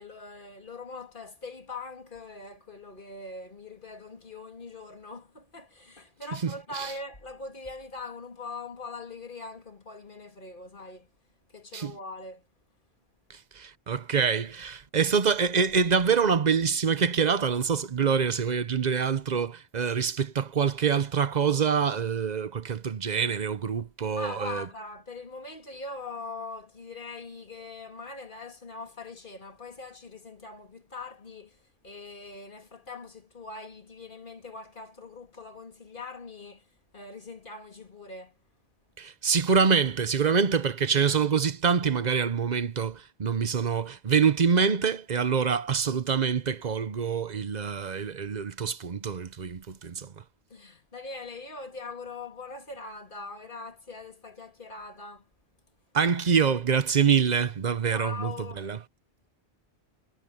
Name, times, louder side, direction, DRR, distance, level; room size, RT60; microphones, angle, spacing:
voice 1, 0.0-11.1 11.5-12.5 24.2-38.4 50.5-55.3 57.9-58.7, left 3 dB, 50° left, 3.1 m, -42 dB
voice 2, 6.4-6.9 11.7-11.9 13.3-24.6 39.0-50.1 55.9-58.8, right 6 dB, 45° right, 0.8 m, -25 dB
omnidirectional pair, 1.1 m